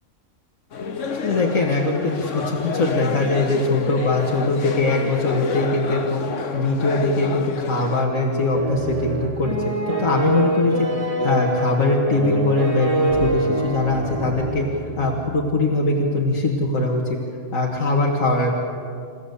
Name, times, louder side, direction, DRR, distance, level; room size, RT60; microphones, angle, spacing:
sound 1, 0.7-8.1, left 5 dB, 70° left, 1.5 m, -29 dB
voice 1, 1.2-17.2 17.5-18.6, left 2 dB, 85° left, -1 dB, 2.3 m, -22 dB
sound 2, 8.5-15.5, right 2 dB, 25° right, 1.8 m, -25 dB
28.5 x 16.0 x 8.4 m, 2.5 s
omnidirectional pair, 1.4 m